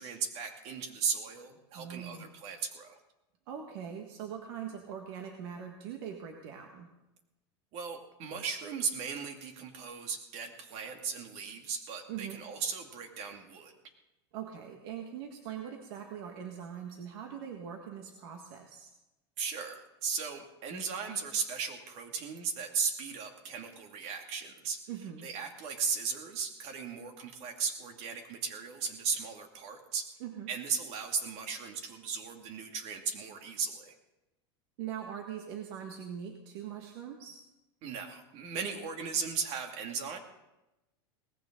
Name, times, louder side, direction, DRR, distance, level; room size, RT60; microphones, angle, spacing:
voice 1, 0.0-3.0 7.7-13.7 19.4-24.8 25.2-30.1 30.5-33.9 37.8-40.2, right 6 dB, 50° right, 4 dB, 2.3 m, -36 dB
voice 2, 1.7-2.3 3.5-6.9 12.1-12.4 14.3-18.9 24.9-25.3 30.2-30.5 34.8-37.4, right 8 dB, 65° right, 3 dB, 1.7 m, -42 dB
19.0 x 15.0 x 3.9 m, 0.97 s
supercardioid pair, 140°, 14 cm